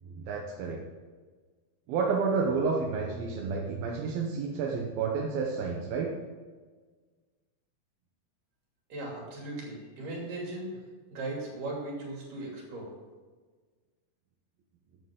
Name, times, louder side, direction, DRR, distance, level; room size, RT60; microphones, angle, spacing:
voice 1, 0.1-0.8 1.9-6.1, right 5 dB, 85° right, -1 dB, 3.0 m, -30 dB
voice 2, 8.9-10.7 11.1-12.9, right 2 dB, 65° right, -2 dB, 4.3 m, -38 dB
14.5 x 9.0 x 3.8 m, 1.4 s
omnidirectional pair, 4.1 m